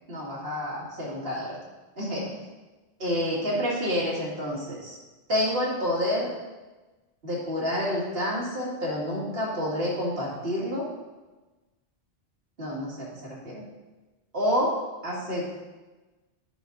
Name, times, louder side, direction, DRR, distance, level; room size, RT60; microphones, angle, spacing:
voice 1, 0.1-1.6 2.0-2.4 3.0-5.0 5.3-6.3 7.2-10.9 12.6-13.6 14.3-14.8 15.0-15.5, equal, 55° right, -5 dB, 2.3 m, -28 dB
9.1 x 5.3 x 4.0 m, 1.2 s
omnidirectional pair, 1.2 m